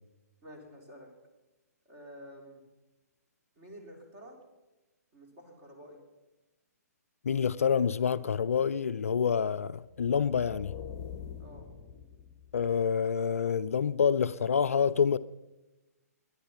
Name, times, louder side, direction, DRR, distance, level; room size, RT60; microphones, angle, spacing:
voice 1, 0.4-1.1 1.9-2.6 3.6-4.4 5.1-6.0 11.4-11.7, equal, 30° right, 3.8 m, -50 dB
voice 2, 7.2-10.7 12.5-15.2, left 7 dB, 55° left, 0.4 m, -27 dB
sound 1, 9.9-12.8, left 7 dB, 20° left, 1.1 m, -44 dB
22.0 x 10.0 x 5.8 m
figure-of-eight pair, 125°, 9 cm